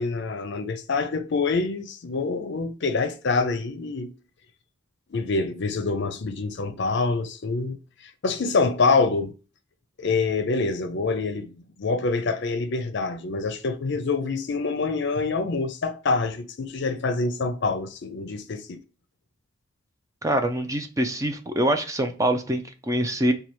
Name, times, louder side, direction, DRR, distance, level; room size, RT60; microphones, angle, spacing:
voice 1, 0.0-4.1 5.1-9.3 10.0-11.5 11.8-18.8, left 3 dB, 60° left, 0.5 m, -26 dB
voice 2, 20.2-23.3, right 1 dB, 15° right, 0.4 m, -24 dB
5.4 x 2.3 x 3.0 m
head